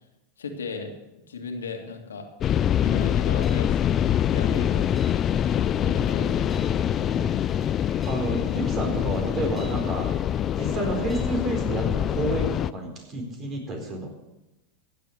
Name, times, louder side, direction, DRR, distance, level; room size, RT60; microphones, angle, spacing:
voice 1, 0.4-0.9 1.3-2.3 2.8-3.8 4.3-4.9 5.8-6.6, left 4 dB, 85° left, 4 dB, 1.9 m, -36 dB
sound 1, 2.4-12.7, left 10 dB, 35° left, 0.3 m, -25 dB
sound 2, 2.9-11.4, right 2 dB, 10° right, 2.7 m, -43 dB
voice 2, 8.0-10.2 10.5-14.1, right 1 dB, 35° right, 3 dB, 4.1 m, -30 dB
15.5 x 7.6 x 6.5 m, 0.97 s
hypercardioid pair, 95°, 0 cm